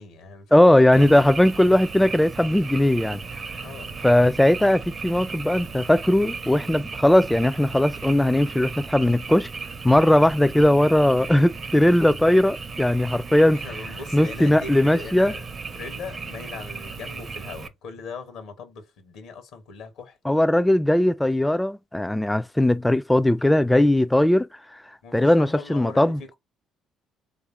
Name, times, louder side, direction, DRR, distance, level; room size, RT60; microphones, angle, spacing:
voice 1, 0.0-1.3 3.6-3.9 13.5-15.5 15.7-20.2 25.0-26.3, left 4 dB, 70° left, 1.0 m, -40 dB
voice 2, 0.5-3.2 4.0-9.5 9.8-13.6 14.1-15.3 20.3-24.5 25.1-26.2, left 1 dB, 5° left, 0.4 m, -19 dB
Frog, 0.9-17.7, right 4 dB, 40° right, 0.7 m, -36 dB
3.4 x 2.5 x 4.3 m
hypercardioid pair, 55°, 0 cm